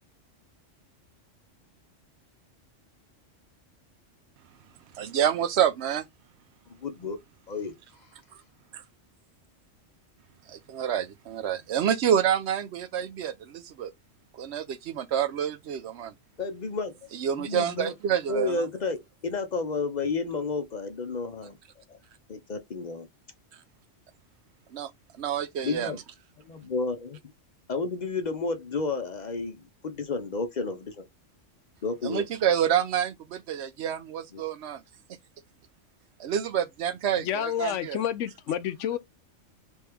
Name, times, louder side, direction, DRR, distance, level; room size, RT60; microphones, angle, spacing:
voice 1, 5.0-6.0 8.7-8.8 10.5-13.9 14.4-16.1 17.1-18.5 24.7-24.9 25.2-25.9 32.0-34.8 36.2-38.0, right 9 dB, 70° right, 0.8 m, -28 dB
voice 2, 6.7-7.2 7.5-7.7 16.4-17.0 17.3-17.9 18.3-21.6 21.9-22.0 22.3-23.1 25.6-26.0 26.5-27.2 27.7-31.1 31.8-32.3 34.3-34.4, left 4 dB, 45° left, 0.7 m, -31 dB
voice 3, 37.2-39.0, left 10 dB, 75° left, 0.9 m, -29 dB
3.5 x 3.2 x 3.4 m
omnidirectional pair, 1.3 m